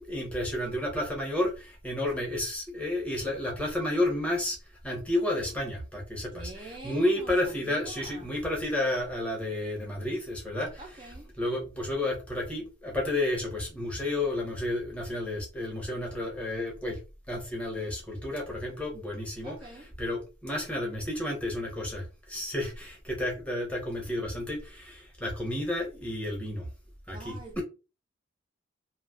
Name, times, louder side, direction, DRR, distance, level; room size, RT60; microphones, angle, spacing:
voice 1, 0.0-4.6 4.8-10.8 11.4-17.0 17.3-19.6 20.0-26.7 27.1-27.6, left 1 dB, 5° left, 0.9 m, -31 dB
voice 2, 6.3-8.3 10.8-11.3 19.4-20.0 27.1-27.6, right 2 dB, 25° right, 0.4 m, -46 dB
3.1 x 2.7 x 2.6 m
head